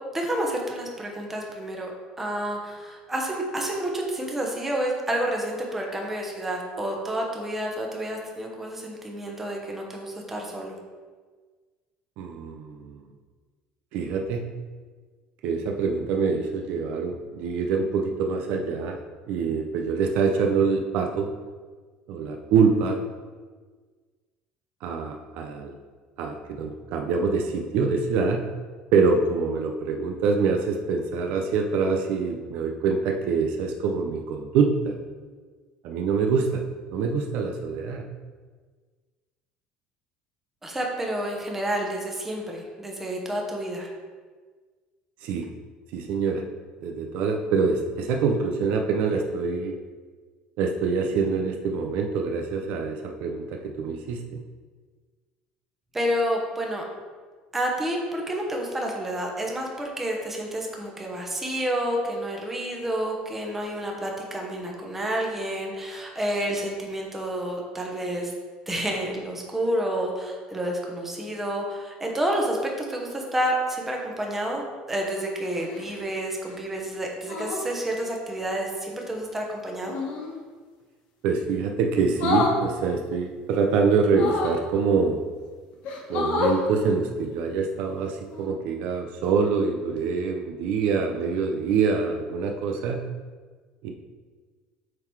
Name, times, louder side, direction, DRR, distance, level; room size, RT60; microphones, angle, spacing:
voice 1, 0.1-1.9 2.2-10.7 40.6-43.9 55.9-56.8 57.5-68.3 68.7-80.0, right 1 dB, 10° right, 0 dB, 1.0 m, -29 dB
voice 2, 12.2-13.0 13.9-14.4 15.4-19.0 19.3-21.3 22.1-23.0 24.8-25.8 26.2-28.4 28.9-35.0 35.8-36.6 36.9-38.1 45.2-45.5 45.9-46.5 46.8-49.8 50.6-54.2 81.2-85.2 86.1-93.0 93.8-93.9, right 5 dB, 60° right, 3 dB, 0.6 m, -25 dB
sound 1, 75.6-76.0 77.2-77.7 79.9-80.3 82.1-82.6 84.1-84.6 85.4-85.5 85.8-86.6 88.2-88.5, left 4 dB, 55° left, 1.5 m, -27 dB
7.5 x 3.9 x 4.6 m, 1.5 s
cardioid pair, 170°, 3 cm